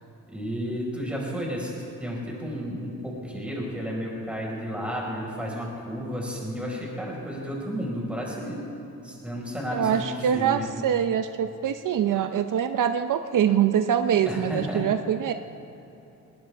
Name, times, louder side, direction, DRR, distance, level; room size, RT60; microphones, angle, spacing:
voice 1, 0.3-8.6 9.0-10.7 14.3-14.9, equal, 5° right, -3 dB, 4.7 m, -32 dB
voice 2, 9.7-15.3, right 9 dB, 70° right, 9 dB, 0.6 m, -24 dB
20.5 x 19.0 x 3.4 m, 3.0 s
cardioid pair, 115°, 33 cm